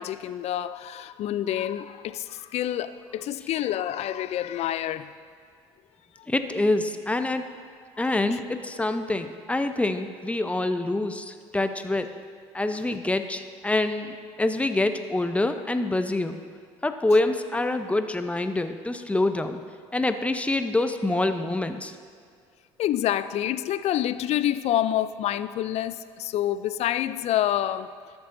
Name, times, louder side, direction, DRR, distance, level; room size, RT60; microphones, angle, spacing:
voice 1, 0.0-5.1 6.2-6.3 8.0-8.1 8.3-8.4 22.8-27.9, left 12 dB, 55° left, 14 dB, 0.4 m, -27 dB
voice 2, 6.3-7.4 8.0-12.1 12.5-16.4 16.8-19.6 19.9-22.0, left 2 dB, 10° left, 8 dB, 0.6 m, -26 dB
13.5 x 6.9 x 2.6 m, 2.1 s
supercardioid pair, 70°, 13 cm